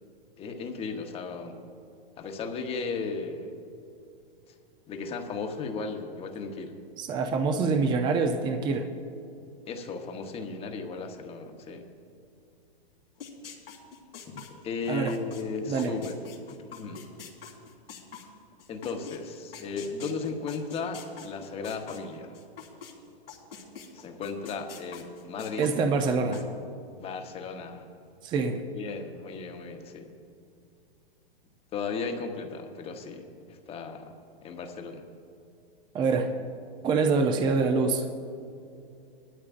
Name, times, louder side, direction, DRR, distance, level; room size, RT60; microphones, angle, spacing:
voice 1, 0.4-1.6 2.2-3.6 4.9-6.7 9.7-11.9 14.3-16.2 16.5-17.1 18.7-22.3 23.9-25.7 27.0-27.9 28.7-30.1 31.7-34.1 34.4-35.1, left 4 dB, 20° left, 5 dB, 1.0 m, -35 dB
voice 2, 7.0-8.9 14.9-15.1 15.7-16.0 25.6-26.5 28.2-28.6 35.9-36.3 36.8-38.1, right 4 dB, 15° right, 6 dB, 0.5 m, -25 dB
sound 1, 13.2-19.2 19.5-22.9 23.3-26.4, left 7 dB, 85° left, 2.8 m, -44 dB
19.0 x 12.5 x 2.5 m, 2.6 s
hypercardioid pair, 135°, 29 cm